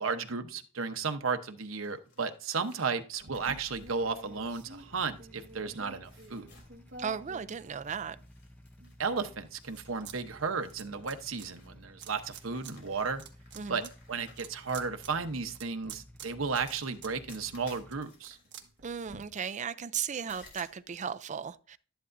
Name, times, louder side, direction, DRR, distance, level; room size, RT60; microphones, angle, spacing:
voice 1, 0.0-6.5 9.0-13.2 13.7-13.8 14.1-18.4, right 5 dB, 80° right, 0.9 m, -34 dB
sound 1, 1.6-5.7 6.0-7.4 7.7-9.2 9.6-15.6 16.5-19.6 20.3-20.8, left 4 dB, 60° left, 3.4 m, -60 dB
sound 2, 3.2-8.3 8.8-10.2 10.4-11.5 12.0-12.7 13.1-19.2, right 4 dB, 60° right, 1.4 m, -50 dB
sound 3, 3.9-18.0, equal, 10° left, 0.6 m, -55 dB
voice 2, 7.0-8.2 13.6-13.9 18.8-21.8, right 7 dB, 35° right, 0.4 m, -36 dB
12.0 x 10.5 x 2.6 m
head